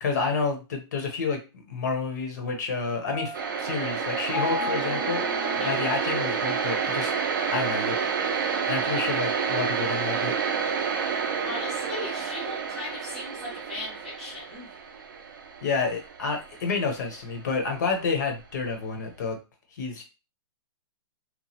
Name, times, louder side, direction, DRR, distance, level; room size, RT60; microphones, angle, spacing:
voice 1, 0.0-5.2 5.5-7.1 7.5-8.0 8.7-10.4 15.6-19.4 19.8-20.0, left 4 dB, 40° left, 4 dB, 0.6 m, -29 dB
Piano, 3.0-6.9, left 1 dB, 80° left, 1.0 m, -36 dB
sound 1, 3.3-17.2, right 6 dB, 50° right, 0.5 m, -29 dB
voice 2, 11.4-14.7, left 2 dB, 5° left, -8 dB, 0.5 m, -37 dB
2.9 x 2.2 x 2.7 m, 0.30 s
hypercardioid pair, 180°, 14 cm